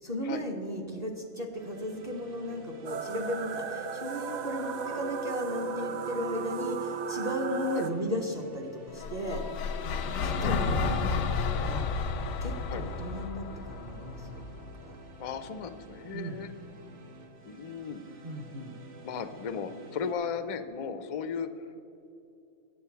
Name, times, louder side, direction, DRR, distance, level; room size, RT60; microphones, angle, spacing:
voice 1, 0.0-9.4 10.2-11.9 12.4-14.4 14.8-15.0 16.1-16.4 18.2-18.8, equal, 35° right, 2 dB, 0.8 m, -35 dB
sound 1, 1.5-20.1, right 2 dB, 65° right, 1.2 m, -52 dB
sound 2, 2.8-7.9, right 6 dB, 85° right, 0.3 m, -35 dB
sound 3, 8.9-15.1, left 5 dB, 90° left, 1.1 m, -32 dB
voice 2, 15.2-16.5 17.5-18.0 19.0-21.7, left 6 dB, 65° left, 9 dB, 0.3 m, -36 dB
8.7 x 7.8 x 5.7 m, 2.7 s
omnidirectional pair, 1.4 m